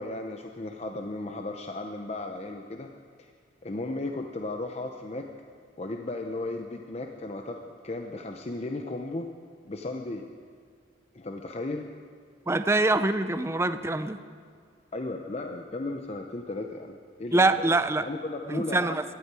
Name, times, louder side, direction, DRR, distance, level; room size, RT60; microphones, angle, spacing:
voice 1, 0.0-2.9 3.6-5.3 5.8-7.6 7.8-9.3 9.6-10.3 11.1-11.9 14.9-19.0, left 2 dB, 35° left, 4 dB, 0.7 m, -35 dB
voice 2, 12.5-14.2 17.3-18.1 18.5-19.0, right 2 dB, 15° right, 11 dB, 0.5 m, -24 dB
17.5 x 12.0 x 4.8 m, 2.1 s
head